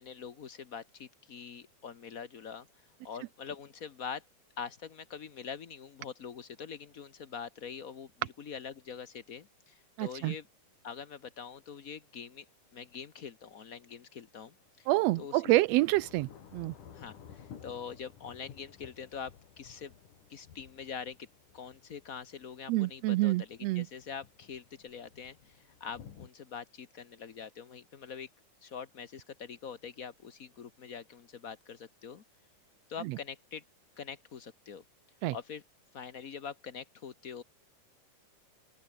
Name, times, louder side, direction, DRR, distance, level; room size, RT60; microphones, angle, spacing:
voice 1, 0.0-4.3 4.6-10.5 10.8-12.5 12.7-14.9 15.1-15.6 16.9-19.9 20.3-21.3 21.5-28.3 28.6-32.2 32.9-33.6 34.0-34.8 35.3-35.6 35.9-37.4, left 6 dB, 70° left, 0.8 m, -44 dB
voice 2, 10.0-10.3 14.9-16.7 22.7-23.8 35.2-35.3, right 18 dB, 85° right, 1.4 m, -27 dB
Thunder / Rain, 11.6-11.7 14.6-26.3, left 8 dB, 85° left, 4.1 m, -55 dB
open air
omnidirectional pair, 3.5 m